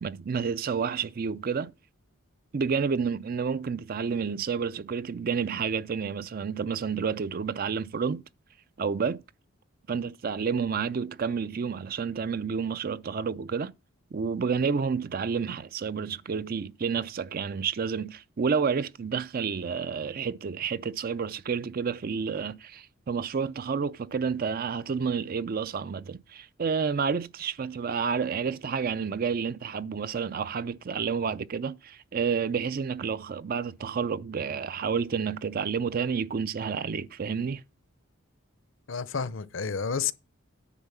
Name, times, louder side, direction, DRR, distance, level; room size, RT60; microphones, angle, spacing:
voice 1, 0.0-1.7 2.5-8.2 8.8-9.2 9.9-13.7 14.1-37.6, right 6 dB, 45° right, 0.4 m, -30 dB
voice 2, 38.9-40.1, left 6 dB, 65° left, 0.6 m, -30 dB
10.0 x 3.9 x 7.1 m
head